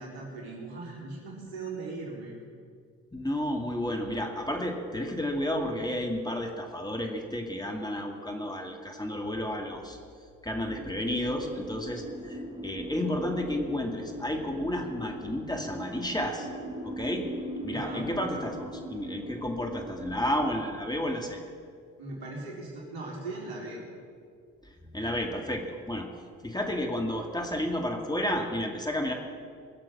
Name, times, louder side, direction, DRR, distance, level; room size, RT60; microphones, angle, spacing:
voice 1, 0.0-2.3 17.7-18.1 22.0-23.8, right 3 dB, 65° right, -2 dB, 4.3 m, -39 dB
voice 2, 3.1-10.0 10.4-16.5 16.8-17.3 17.6-21.4 24.8-26.1 26.4-29.1, left 1 dB, 10° left, 2 dB, 2.2 m, -31 dB
sound 1, 10.6-20.6, equal, 15° right, 3.3 m, -40 dB
21.0 x 7.5 x 7.5 m, 2.2 s
hypercardioid pair, 55°, 39 cm